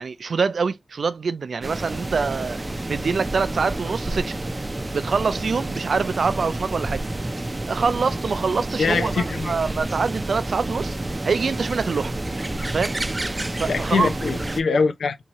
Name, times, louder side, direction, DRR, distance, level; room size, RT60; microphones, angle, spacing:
voice 1, 0.0-2.6 2.9-4.3 4.9-7.0 7.7-11.0 11.2-12.1 12.7-12.9 13.6-14.1, right 5 dB, 75° right, 0.4 m, -25 dB
sound 1, 1.6-14.6, right 2 dB, 25° right, 0.5 m, -29 dB
voice 2, 8.8-9.6 13.7-15.2, left 4 dB, 90° left, 0.6 m, -23 dB
3.6 x 2.8 x 2.9 m
cardioid pair, 60°, 0 cm